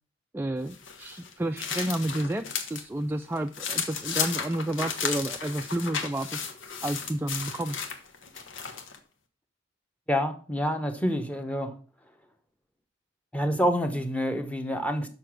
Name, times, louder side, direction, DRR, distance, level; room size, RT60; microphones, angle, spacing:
voice 1, 0.3-6.5 6.8-7.8, right 1 dB, 10° right, 6 dB, 0.3 m, -31 dB
sound 1, 0.7-2.9 3.2-9.0, left 6 dB, 85° left, 1.3 m, -34 dB
voice 2, 10.1-11.8 13.3-15.1, equal, 5° left, 6 dB, 1.0 m, -27 dB
6.8 x 5.8 x 6.2 m, 0.39 s
head